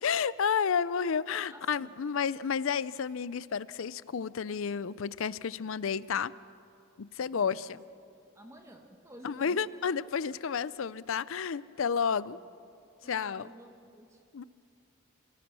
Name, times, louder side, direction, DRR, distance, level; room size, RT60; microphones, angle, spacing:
voice 1, 0.0-6.3 7.0-7.8 9.2-12.4 13.1-13.5 14.3-14.4, left 6 dB, 70° left, 18 dB, 0.5 m, -31 dB
voice 2, 1.5-1.9 7.3-8.0 8.3-9.8 12.2-12.5 13.0-14.2, right 1 dB, 15° right, 3 dB, 1.7 m, -53 dB
29.0 x 17.5 x 6.2 m, 2.6 s
head